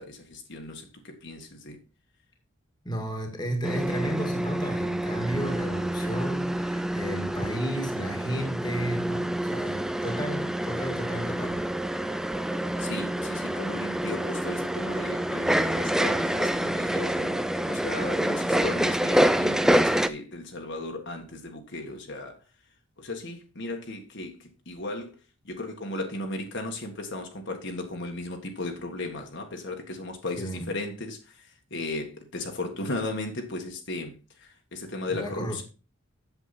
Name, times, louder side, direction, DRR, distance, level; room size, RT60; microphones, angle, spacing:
voice 1, 0.0-1.8 12.8-22.4 23.0-25.1 25.4-35.6, left 2 dB, 55° left, 1.6 m, -36 dB
voice 2, 2.8-11.6 30.4-30.7 35.1-35.6, equal, 20° left, 1.8 m, -33 dB
sound 1, 3.6-20.1, right 1 dB, ahead, 0.4 m, -27 dB
8.2 x 7.5 x 4.2 m
head